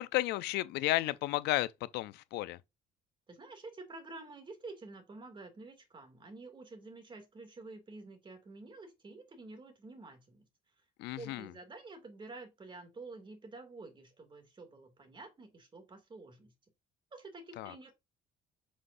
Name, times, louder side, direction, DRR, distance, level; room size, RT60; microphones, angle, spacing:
voice 1, 0.0-2.6 11.0-11.5 17.6-17.7, left 17 dB, 85° left, 0.4 m, -33 dB
voice 2, 3.3-10.4 11.2-16.5 17.1-17.9, right 3 dB, 30° right, 2.3 m, -49 dB
8.0 x 5.6 x 2.6 m
cardioid pair, 110°, 17 cm